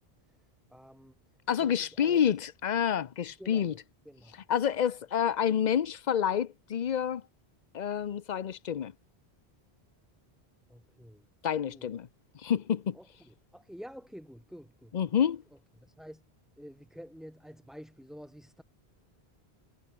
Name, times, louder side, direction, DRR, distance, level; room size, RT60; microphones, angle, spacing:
voice 1, 0.2-1.2 1.6-2.3 3.4-3.8 4.0-4.4 10.7-11.3 11.7-11.9 12.9-15.0 15.5-16.2 16.6-18.6, equal, ahead, 3.3 m, -49 dB
voice 2, 1.5-3.7 4.5-7.2 7.7-8.9 11.4-12.1 12.4-13.0 14.9-15.4, left 8 dB, 50° left, 0.7 m, -28 dB
omnidirectional pair, 1.1 m